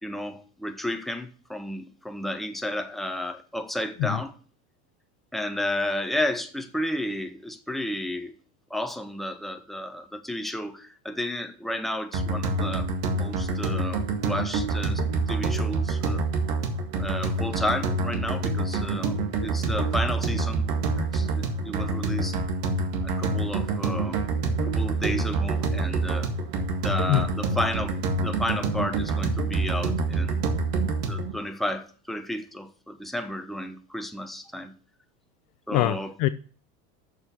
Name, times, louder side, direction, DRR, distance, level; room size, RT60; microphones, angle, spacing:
voice 1, 0.0-4.3 5.3-8.3 8.7-12.9 13.1-16.2 17.0-20.6 21.0-22.4 23.0-24.2 24.6-26.3 26.8-30.4 31.1-34.7 35.7-36.1, left 1 dB, ahead, 1.1 m, -32 dB
sound 1, 12.1-31.3, right 3 dB, 70° right, 2.0 m, -27 dB
voice 2, 35.7-36.3, left 16 dB, 50° left, 0.6 m, -23 dB
7.0 x 6.3 x 6.8 m
hypercardioid pair, 95°, 45 cm